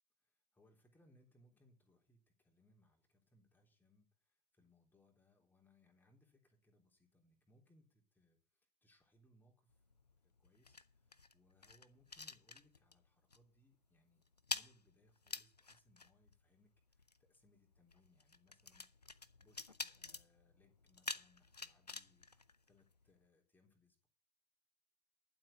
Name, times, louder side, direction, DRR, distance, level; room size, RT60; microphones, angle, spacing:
voice 1, 0.2-8.4 8.8-9.7 10.2-14.2 14.5-18.8 19.4-24.1, left 1 dB, 10° left, 1 dB, 3.4 m, -72 dB
sound 1, 9.7-13.1 13.3-13.6 13.8-23.2, left 4 dB, 90° left, 0.6 m, -49 dB
12.0 x 7.6 x 5.7 m, 0.39 s
figure-of-eight pair, 85°, 20 cm